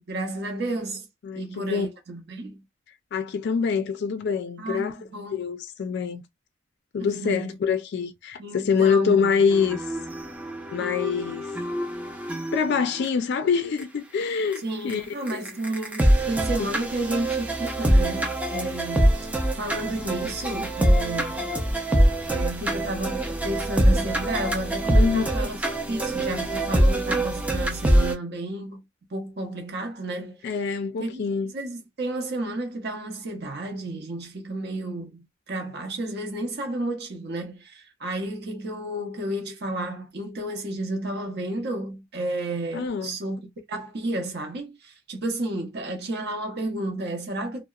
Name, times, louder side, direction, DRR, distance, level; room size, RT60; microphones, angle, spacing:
voice 1, 0.0-1.1 1.4-2.6 4.6-5.4 7.0-7.5 8.4-9.3 14.6-21.5 22.3-25.6 25.9-28.8 29.1-30.5 31.0-31.3 31.5-47.6, right 1 dB, 55° right, 0.7 m, -32 dB
voice 2, 1.2-1.9 3.1-5.0 5.3-6.2 6.9-10.0 10.7-11.5 12.5-15.5 16.6-16.7 24.9-25.4 30.4-31.5 42.7-43.2, left 6 dB, 60° left, 0.3 m, -25 dB
sound 1, 9.5-13.1 13.8-13.9 14.5-14.6 14.9-15.0 15.3-28.1, right 1 dB, 5° right, 0.5 m, -24 dB
2.8 x 2.0 x 2.3 m
head